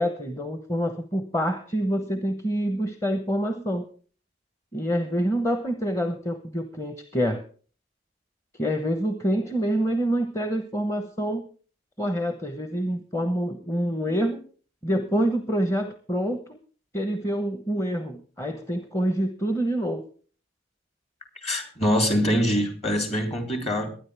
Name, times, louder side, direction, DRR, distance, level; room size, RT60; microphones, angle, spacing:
voice 1, 0.0-3.8 4.7-7.4 8.5-11.4 12.0-14.4 14.8-16.6 16.9-20.0, equal, 15° left, 1.1 m, -26 dB
voice 2, 21.4-23.9, equal, 35° left, 3.4 m, -24 dB
22.5 x 9.8 x 3.5 m
head